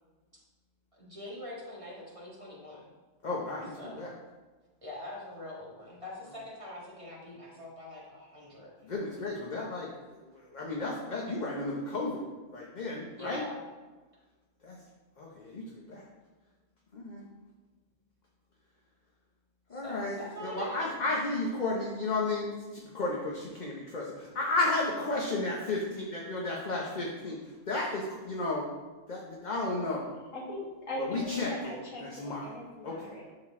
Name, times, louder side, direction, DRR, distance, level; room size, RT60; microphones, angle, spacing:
voice 1, 0.9-2.8 3.8-4.1 4.8-8.9 13.2-13.6 19.7-20.9, left 1 dB, 25° right, -6 dB, 1.9 m, -43 dB
voice 2, 3.2-4.1 8.8-12.2 12.5-13.4 14.6-14.8 15.2-16.0 16.9-17.3 19.7-27.4 27.7-28.7 29.1-30.1 31.1-32.6 32.8-33.1, left 2 dB, 40° left, -2 dB, 0.9 m, -33 dB
voice 3, 30.3-33.3, left 1 dB, 85° left, -3 dB, 2.0 m, -40 dB
11.5 x 3.9 x 3.6 m, 1.3 s
omnidirectional pair, 1.3 m